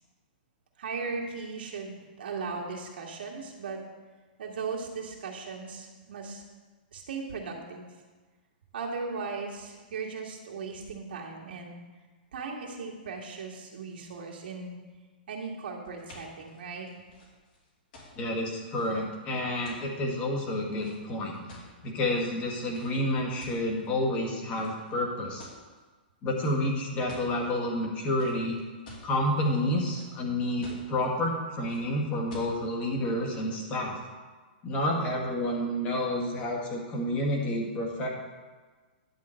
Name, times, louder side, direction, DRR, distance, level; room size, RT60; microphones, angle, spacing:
voice 1, 0.8-3.8 4.4-6.4 6.9-7.9 8.7-11.7 12.3-14.7 15.3-16.9, right 4 dB, 75° right, -2 dB, 2.0 m, -37 dB
sound 1, 15.8-22.0 22.6-22.9 23.4-24.1 24.5-24.9 25.4-25.8 26.4-26.5 26.8-27.3 28.2-29.1 29.6-30.2 30.6-31.0 31.7-31.8 32.3-32.5, left 2 dB, 55° left, 2.9 m, -49 dB
voice 2, 18.1-21.5 21.8-25.5 26.2-28.6 29.0-34.0 34.6-38.1, left 1 dB, 25° left, 0 dB, 1.7 m, -29 dB
10.5 x 3.8 x 7.5 m, 1.4 s
hypercardioid pair, 155°, 5 cm